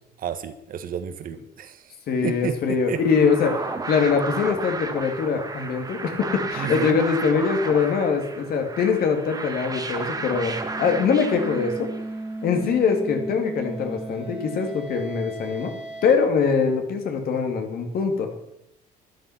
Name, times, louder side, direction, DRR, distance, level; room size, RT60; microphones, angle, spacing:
voice 1, 0.2-1.8 2.2-3.0 6.6-7.0, right 8 dB, 55° right, 10 dB, 1.4 m, -31 dB
voice 2, 2.1-3.6 3.9-11.9 12.4-15.7 16.0-18.3, left 5 dB, 65° left, 5 dB, 2.6 m, -23 dB
sound 1, 2.9-12.3, right 3 dB, 20° right, 1.8 m, -33 dB
sound 2, 9.8-16.1, right 2 dB, 5° right, 2.5 m, -36 dB
12.5 x 10.5 x 5.9 m, 0.79 s
cardioid pair, 110°, 17 cm